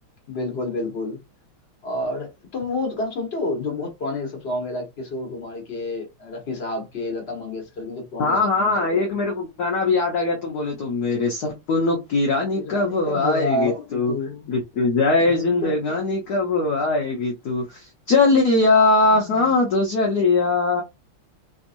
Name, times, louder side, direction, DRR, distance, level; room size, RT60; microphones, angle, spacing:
voice 1, 0.3-1.2 1.8-9.1 12.5-14.5 15.1-16.0 19.0-19.5, left 2 dB, 35° left, 1.3 m, -30 dB
voice 2, 8.2-14.1 14.5-20.8, left 3 dB, 60° left, 1.2 m, -21 dB
3.6 x 2.9 x 2.5 m
omnidirectional pair, 2.3 m